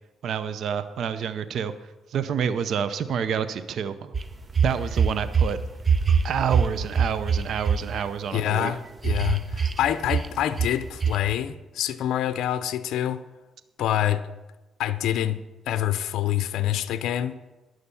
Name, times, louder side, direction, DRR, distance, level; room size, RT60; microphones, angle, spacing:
voice 1, 0.2-1.7 2.1-4.1 4.6-5.6 6.2-8.7, right 7 dB, 65° right, 13 dB, 0.6 m, -28 dB
sound 1, 4.1-5.5 5.8-7.8 9.0-9.8 10.0-10.3 10.6-10.8 11.0-11.2, right 6 dB, 30° right, 0.7 m, -22 dB
voice 2, 8.3-13.2 13.8-14.2 14.8-15.4 15.7-17.3, left 11 dB, 80° left, 12 dB, 0.5 m, -26 dB
11.5 x 6.4 x 6.9 m, 1.1 s
cardioid pair, 90°, 0 cm